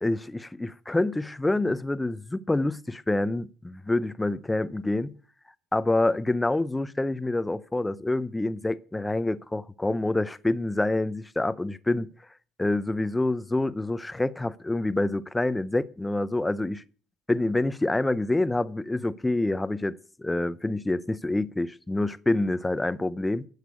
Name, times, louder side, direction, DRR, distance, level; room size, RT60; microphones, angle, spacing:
voice 1, 0.0-5.1 5.7-12.1 12.6-16.8 17.3-23.5, left 2 dB, 10° left, 0.6 m, -27 dB
11.0 x 6.6 x 8.2 m
supercardioid pair, 80°, 0 cm